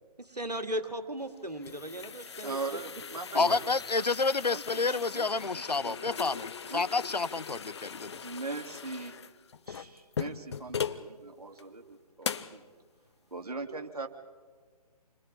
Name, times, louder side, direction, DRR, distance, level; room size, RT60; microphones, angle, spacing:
voice 1, 0.2-2.8 3.3-3.6, right 1 dB, 85° right, 7 dB, 2.6 m, -37 dB
sound 1, 1.2-11.1 11.6-11.7 12.2-12.6, left 7 dB, 45° left, 0.9 m, -40 dB
voice 2, 2.4-3.7 4.4-5.3 5.8-6.9 8.2-9.2 9.7-12.7 13.3-14.1, right 3 dB, 70° right, 4 dB, 2.9 m, -40 dB
voice 3, 3.3-8.2, left 3 dB, 85° left, 19 dB, 0.7 m, -29 dB
29.5 x 23.5 x 4.5 m, 1.5 s
figure-of-eight pair, 145°, 20 cm